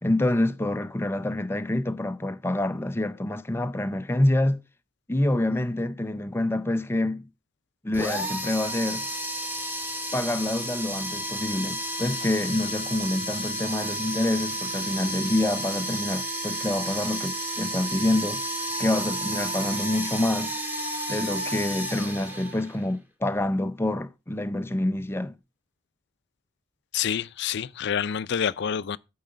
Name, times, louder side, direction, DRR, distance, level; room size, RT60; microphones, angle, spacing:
voice 1, 0.0-4.6 5.1-7.3 7.8-9.1 10.1-18.4 18.8-20.6 21.1-25.4, left 1 dB, 10° left, 0.5 m, -27 dB
sound 1, 7.9-22.8, right 1 dB, 10° right, 3.8 m, -32 dB
Wind instrument woodwind instrument, 18.7-22.8, right 7 dB, 25° right, 2.5 m, -41 dB
voice 2, 26.9-29.0, left 8 dB, 60° left, 0.5 m, -27 dB
9.1 x 4.7 x 7.6 m
head